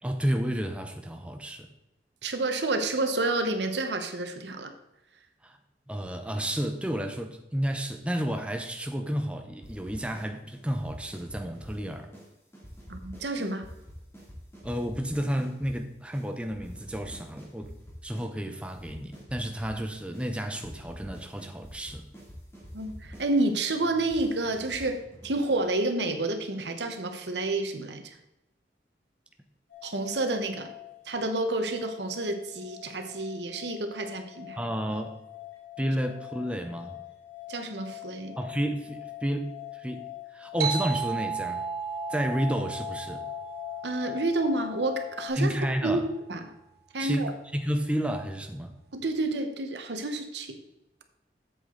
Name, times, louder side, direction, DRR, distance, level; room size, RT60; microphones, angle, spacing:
voice 1, 0.0-1.7 5.4-5.6 5.9-12.1 14.6-17.7 18.0-22.0 34.6-35.1 35.8-37.0 38.4-40.0 40.3-41.6 42.1-43.3 45.3-46.1 47.0-48.7, equal, 5° right, 4 dB, 0.7 m, -31 dB
voice 2, 2.2-4.7 12.9-13.7 22.7-28.2 29.8-30.7 31.1-34.6 37.5-38.4 43.8-45.5 45.8-46.0 46.3-46.5 46.9-47.3 48.9-50.6, right 2 dB, 80° right, 7 dB, 1.1 m, -29 dB
sound 1, 9.6-10.3 10.5-11.8 12.1-12.3 12.5-15.7 16.1-16.2 16.5-18.3 18.5-19.8 20.1-20.3 20.5-25.6, equal, 15° left, 2.8 m, -47 dB
sound 2, 29.7-45.3, left 16 dB, 75° left, 2.4 m, -43 dB
sound 3, 40.6-45.6, right 6 dB, 60° right, 0.7 m, -35 dB
8.2 x 7.6 x 3.9 m, 0.92 s
head